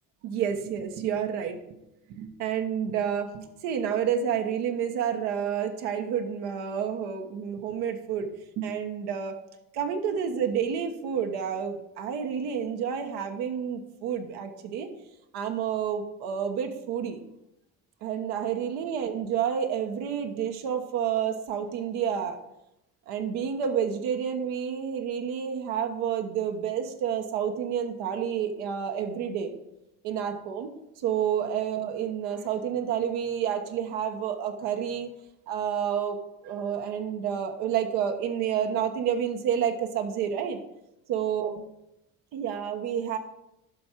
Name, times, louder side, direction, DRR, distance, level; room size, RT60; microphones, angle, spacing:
voice 1, 0.2-1.8 2.1-8.3 8.6-9.4 9.7-14.9 15.3-17.2 18.0-22.4 23.1-29.5 30.0-30.7 31.0-35.1 35.5-36.2 36.4-40.6 41.1-41.5 42.3-43.2, right 8 dB, 75° right, 5 dB, 1.2 m, -29 dB
10.5 x 5.6 x 4.5 m, 0.88 s
supercardioid pair, 75°, 39 cm